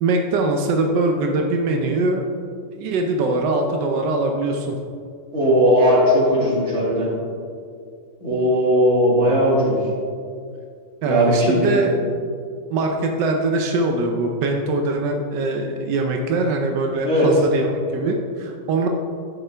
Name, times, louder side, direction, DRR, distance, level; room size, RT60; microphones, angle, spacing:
voice 1, 0.0-2.3 2.7-4.8 11.0-12.0 12.7-18.9, right 2 dB, 90° right, 3 dB, 1.3 m, -22 dB
voice 2, 5.3-7.1 8.2-9.8 11.1-11.7 17.0-17.3, equal, 40° right, -6 dB, 2.4 m, -17 dB
10.0 x 6.5 x 3.4 m, 2.3 s
omnidirectional pair, 1.8 m